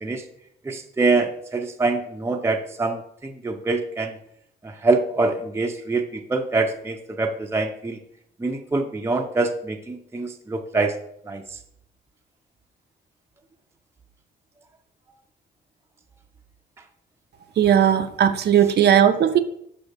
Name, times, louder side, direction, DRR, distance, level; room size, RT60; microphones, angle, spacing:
voice 1, 0.6-4.1 4.6-8.0 8.4-10.9 11.3-11.4, right 3 dB, 15° right, 3 dB, 0.6 m, -25 dB
voice 2, 17.6-19.4, right 9 dB, 55° right, 7 dB, 0.6 m, -17 dB
5.6 x 5.1 x 4.1 m, 0.73 s
cardioid pair, 90°, 20 cm